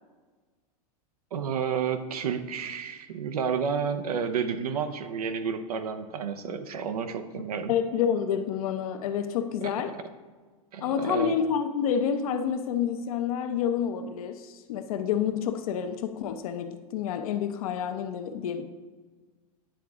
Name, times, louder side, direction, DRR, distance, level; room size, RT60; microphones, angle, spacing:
voice 1, 1.3-7.7 9.6-9.7 10.7-11.3, right 6 dB, 90° right, 9 dB, 0.7 m, -30 dB
voice 2, 7.7-10.0 10.8-18.6, left 8 dB, 70° left, 7 dB, 0.7 m, -28 dB
10.0 x 3.7 x 3.5 m, 1.4 s
hypercardioid pair, 120°, 19 cm